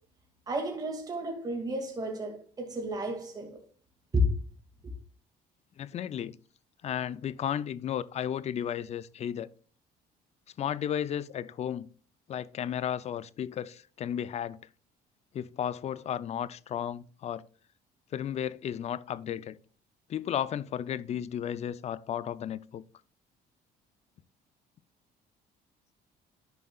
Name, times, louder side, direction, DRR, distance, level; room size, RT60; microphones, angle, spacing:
voice 1, 0.5-3.6 4.1-4.4, left 1 dB, 20° right, 2.0 m, -31 dB
voice 2, 5.8-6.3 6.8-9.5 10.6-11.9 12.3-14.6 15.3-17.5 18.1-19.6 20.1-22.8, left 9 dB, 40° left, 0.4 m, -34 dB
12.0 x 5.3 x 2.3 m
cardioid pair, 110°, 17 cm